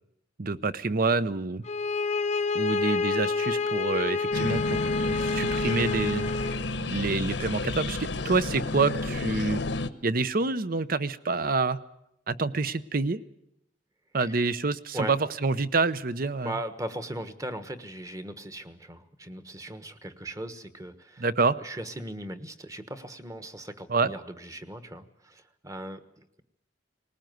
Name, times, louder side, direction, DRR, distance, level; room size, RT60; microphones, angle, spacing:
voice 1, 0.4-1.6 2.5-4.8 5.0-6.3 6.9-9.6 10.0-11.8 12.3-13.2 14.1-16.6 21.2-21.6 23.9-24.1, right 3 dB, 50° right, 15 dB, 0.8 m, -27 dB
sound 1, 1.6-6.6, left 4 dB, 40° left, 0.9 m, -28 dB
sound 2, 4.3-9.9, left 2 dB, 75° left, 1.0 m, -31 dB
voice 2, 16.4-21.2 21.6-26.4, right 1 dB, 20° right, 11 dB, 1.3 m, -38 dB
20.0 x 19.5 x 9.3 m, 0.81 s
head